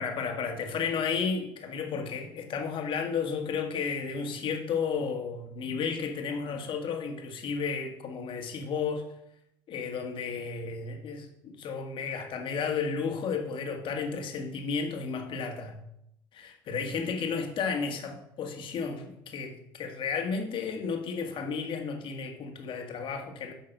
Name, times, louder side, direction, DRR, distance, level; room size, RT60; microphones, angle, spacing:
voice 1, 0.0-9.0 9.7-15.8 16.3-23.5, left 5 dB, 55° left, 4 dB, 1.8 m, -33 dB
8.9 x 5.6 x 6.1 m, 0.80 s
supercardioid pair, 80°, 10 cm